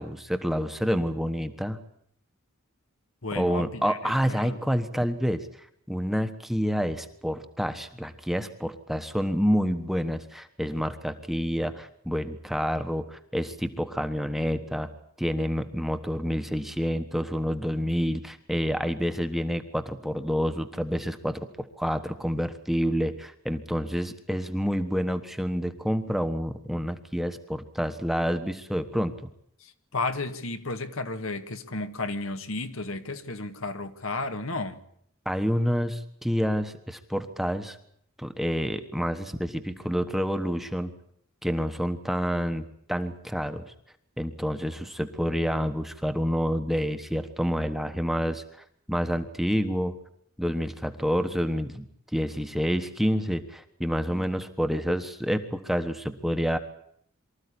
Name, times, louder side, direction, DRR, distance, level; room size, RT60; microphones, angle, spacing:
voice 1, 0.0-1.8 3.3-5.5 5.9-14.9 15.2-21.5 21.8-29.1 35.2-37.8 38.2-40.9 41.4-43.7 44.2-48.4 48.9-49.9 50.4-51.9 52.1-56.6, equal, ahead, 1.2 m, -28 dB
voice 2, 3.2-4.6 29.6-34.8, left 3 dB, 65° left, 1.7 m, -33 dB
24.5 x 14.0 x 10.0 m
head